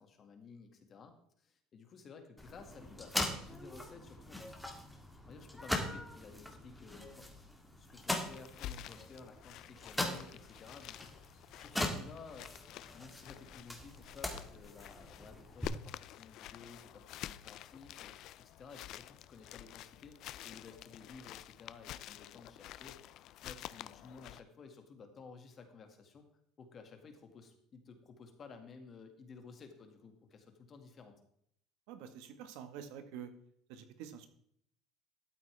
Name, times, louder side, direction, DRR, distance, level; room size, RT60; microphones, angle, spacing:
voice 1, 0.0-4.8 5.3-11.1 11.6-12.5 12.9-18.1 18.4-20.2 20.4-26.3 26.6-31.1, left 5 dB, 35° left, 5 dB, 2.1 m, -54 dB
sound 1, 2.4-15.7, left 1 dB, 5° left, 1.9 m, -41 dB
sound 2, 8.2-24.4, left 13 dB, 55° left, 0.4 m, -50 dB
voice 2, 31.9-33.3 33.7-34.3, right 8 dB, 75° right, 8 dB, 1.6 m, -47 dB
13.0 x 8.6 x 3.5 m, 0.69 s
cardioid pair, 125°, 0 cm